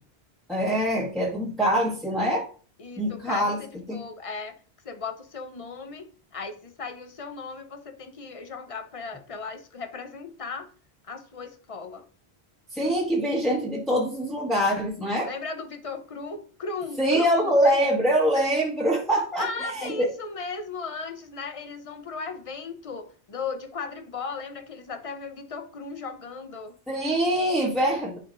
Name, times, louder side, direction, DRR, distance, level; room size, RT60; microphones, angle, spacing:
voice 1, 0.5-2.5 3.0-3.6 3.9-4.0 12.7-15.3 17.0-20.1 26.9-28.2, equal, ahead, -4 dB, 1.5 m, -24 dB
voice 2, 2.8-4.6 4.8-10.7 11.1-12.1 15.2-17.8 19.4-26.8, left 4 dB, 35° left, 7 dB, 0.9 m, -36 dB
11.0 x 5.1 x 2.6 m, 0.41 s
omnidirectional pair, 1.1 m